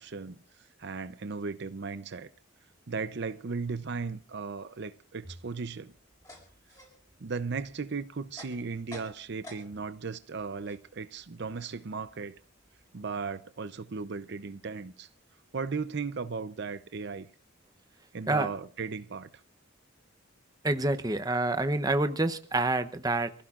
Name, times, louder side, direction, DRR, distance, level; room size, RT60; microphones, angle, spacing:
voice 1, 0.0-2.3 2.9-5.9 7.2-12.4 12.9-15.1 15.5-17.3 18.1-19.3, right 4 dB, 60° right, 0.6 m, -36 dB
sound 1, 6.0-10.0 10.3-13.2, left 1 dB, 20° left, 6.6 m, -52 dB
voice 2, 20.6-23.3, right 2 dB, 20° right, 0.8 m, -27 dB
28.0 x 15.5 x 2.5 m
head